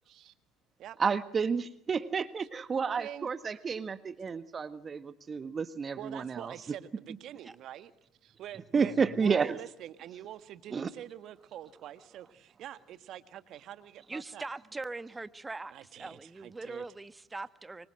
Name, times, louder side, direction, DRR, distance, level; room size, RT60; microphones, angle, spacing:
voice 1, 1.0-6.5 8.7-9.6 10.7-10.9, right 5 dB, 35° right, 12 dB, 1.5 m, -31 dB
voice 2, 2.8-3.3 3.5-3.6 6.0-7.9 8.2-8.9 9.2-14.4 15.7-16.8, right 12 dB, 55° right, 12 dB, 1.7 m, -45 dB
voice 3, 14.1-17.9, right 3 dB, 15° right, 13 dB, 1.4 m, -41 dB
26.5 x 24.5 x 7.7 m, 0.76 s
hypercardioid pair, 70°, 0 cm